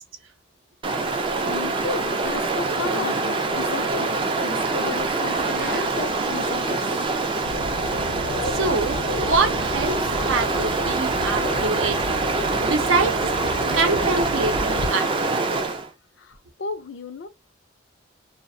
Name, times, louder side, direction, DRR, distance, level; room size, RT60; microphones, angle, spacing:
Stream, 0.8-15.9, right 3 dB, 25° right, 0.3 m, -25 dB
voice 1, 1.1-4.1 4.4-6.8 16.2-17.3, left 4 dB, 65° left, 0.4 m, -34 dB
sound 1, 5.3-5.9, right 2 dB, 45° right, 0.8 m, -37 dB
sound 2, 7.4-14.9, left 2 dB, 90° left, 0.7 m, -33 dB
voice 2, 8.4-12.0 12.6-13.2 13.7-15.1, right 3 dB, 80° right, 0.6 m, -25 dB
2.4 x 2.0 x 2.6 m
head